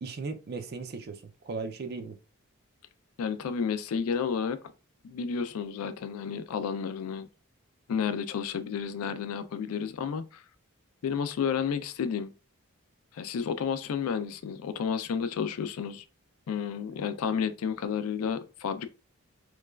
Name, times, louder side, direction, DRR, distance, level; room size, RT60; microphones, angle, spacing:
voice 1, 0.0-2.2, right 4 dB, 45° right, 0.3 m, -37 dB
voice 2, 3.2-4.6 5.0-7.3 7.9-10.4 11.0-12.3 13.1-16.0 16.5-18.9, left 6 dB, 80° left, 0.3 m, -31 dB
3.1 x 2.3 x 2.2 m
head